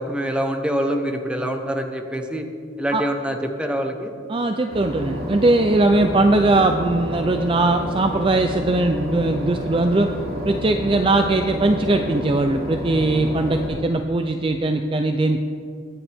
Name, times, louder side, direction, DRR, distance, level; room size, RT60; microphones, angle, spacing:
voice 1, 0.0-2.4 2.8-4.1, equal, 5° right, 3 dB, 1.0 m, -25 dB
voice 2, 4.3-10.1 10.4-15.4, right 2 dB, 25° right, 6 dB, 0.4 m, -20 dB
Boat Water vehicle / Engine, 4.7-13.7, left 1 dB, 50° right, 3.3 m, -30 dB
22.5 x 9.9 x 3.6 m, 2.3 s
head